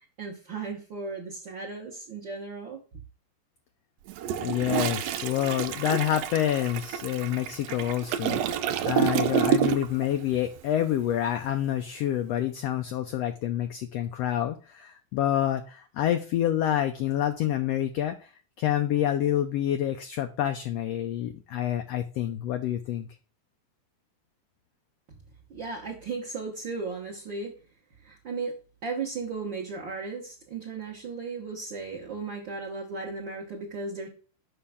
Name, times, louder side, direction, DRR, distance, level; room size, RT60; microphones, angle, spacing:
voice 1, 0.2-2.8 25.5-27.5 28.0-34.1, right 4 dB, 50° right, -3 dB, 1.6 m, -36 dB
Toilet flush, 4.1-10.1 10.3-10.6, right 9 dB, 85° right, 1.5 m, -28 dB
voice 2, 4.4-18.3 18.6-23.1, left 11 dB, 75° left, 7 dB, 1.5 m, -28 dB
7.1 x 5.6 x 3.5 m, 0.36 s
omnidirectional pair, 3.5 m